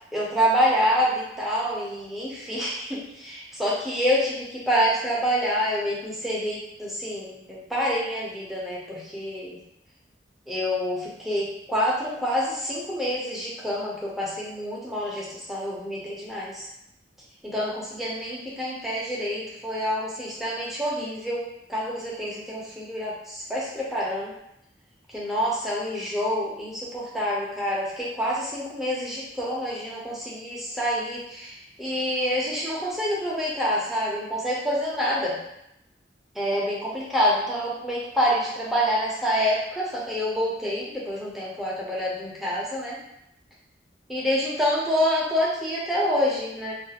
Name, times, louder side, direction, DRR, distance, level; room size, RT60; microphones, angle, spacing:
voice 1, 0.1-9.6 10.5-16.7 17.4-21.4 21.7-24.3 25.1-35.4 36.4-43.0 44.1-46.7, equal, ahead, -6 dB, 0.5 m, -27 dB
2.3 x 2.3 x 2.8 m, 0.81 s
head